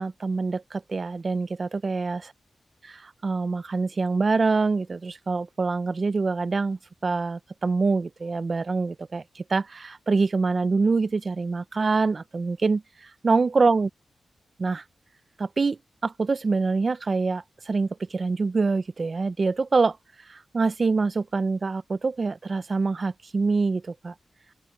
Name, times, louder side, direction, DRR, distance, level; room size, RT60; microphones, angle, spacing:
voice 1, 0.0-2.3 2.8-12.8 13.2-13.9 14.6-14.8 15.4-20.0 20.3-24.1, right 4 dB, 45° right, 0.8 m, -25 dB
open air
cardioid pair, 75°, 0 cm